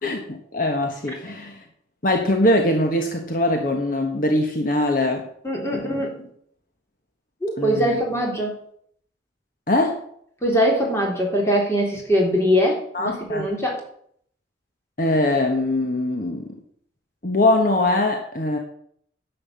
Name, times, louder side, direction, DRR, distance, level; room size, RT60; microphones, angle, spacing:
voice 1, 0.0-1.6 2.0-5.3 5.7-6.0 7.6-8.0 9.7-10.0 12.9-13.5 15.0-16.6 17.2-18.6, left 1 dB, 50° left, 3 dB, 1.3 m, -22 dB
voice 2, 5.4-6.1 7.4-8.6 10.4-13.8, equal, 15° left, -1 dB, 3.4 m, -22 dB
10.5 x 7.6 x 7.5 m, 0.65 s
head